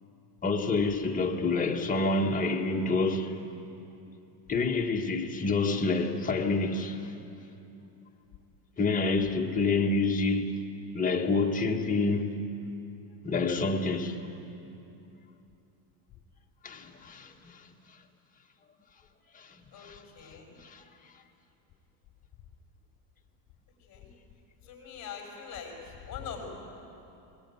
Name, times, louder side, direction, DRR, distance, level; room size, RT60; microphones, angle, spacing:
voice 1, 0.4-3.4 4.5-7.1 8.8-10.6 10.9-12.3 13.2-14.2 16.6-17.7 19.3-20.0 20.6-20.8, left 3 dB, 15° left, 1.7 m, -28 dB
voice 2, 19.7-20.6 23.9-24.1 24.6-26.5, left 7 dB, 35° left, 6.3 m, -43 dB
21.0 x 21.0 x 9.5 m
supercardioid pair, 130°, 49 cm